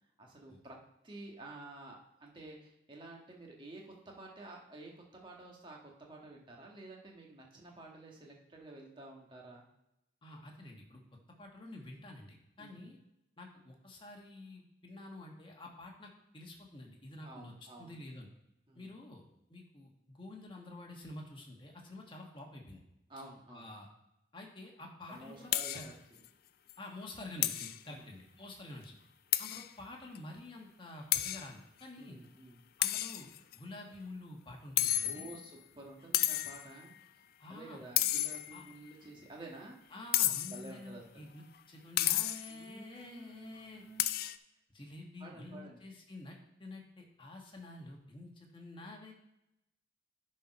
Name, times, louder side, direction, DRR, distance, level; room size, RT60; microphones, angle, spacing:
voice 1, 0.2-0.8 1.0-9.6 12.6-12.8 17.2-17.9 18.7-18.9 23.1-23.7 25.1-25.9 27.9-28.1 32.0-32.6 35.0-36.9 37.5-39.8 40.5-41.3 42.5-44.1 45.2-45.8, right 2 dB, 25° right, -1 dB, 1.4 m, -51 dB
voice 2, 10.2-11.0 11.4-13.0 13.4-18.3 18.7-19.2 19.5-22.8 23.5-23.9 24.3-25.9 26.8-29.0 29.4-32.2 32.8-35.4 37.4-37.8 38.5-38.6 39.9-43.8 44.7-49.1, left 2 dB, 25° left, 1 dB, 1.4 m, -49 dB
sound 1, 25.5-25.9 26.2-26.3 26.7-26.8 27.4-27.8 29.3-29.7 30.1-30.2 31.1-31.5 32.8-33.5 34.8-35.5 36.1-36.7 38.0-38.7 40.1-40.7 42.0-42.5 44.0-44.4, left 14 dB, 50° left, 0.3 m, -31 dB
10.0 x 4.4 x 5.3 m, 0.86 s
head